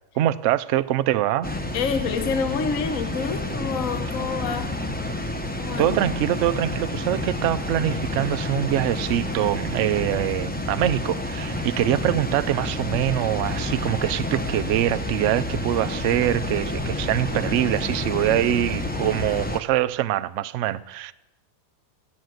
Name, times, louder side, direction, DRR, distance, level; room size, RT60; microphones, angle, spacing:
voice 1, 0.2-1.5 5.8-21.1, right 13 dB, 65° right, 11 dB, 0.7 m, -24 dB
Water, 1.4-19.6, left 1 dB, 10° left, 0.6 m, -29 dB
voice 2, 1.7-4.8 5.6-6.0, left 6 dB, 55° left, 8 dB, 1.2 m, -27 dB
14.0 x 9.6 x 7.8 m, 0.96 s
omnidirectional pair, 1.8 m